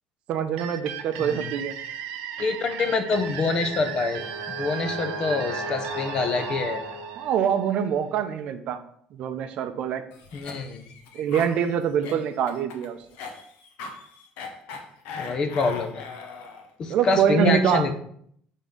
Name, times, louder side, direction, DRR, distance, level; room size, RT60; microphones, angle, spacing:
voice 1, 0.3-1.7 7.2-8.8 9.1-10.0 11.1-13.0 16.9-17.9, right 8 dB, 45° right, 10 dB, 0.6 m, -24 dB
sound 1, 0.6-8.1, right 8 dB, 90° right, 0.7 m, -36 dB
voice 2, 1.2-1.5 2.4-4.2 4.6-6.8 10.3-10.8 15.2-16.0 16.8-18.0, left 4 dB, 30° left, 8 dB, 0.6 m, -26 dB
Brass instrument, 3.1-7.4, equal, 50° left, 1.8 m, -37 dB
Cough, 10.1-16.7, left 4 dB, 75° left, 1.1 m, -40 dB
6.0 x 3.6 x 5.3 m, 0.66 s
cardioid pair, 175°, 3 cm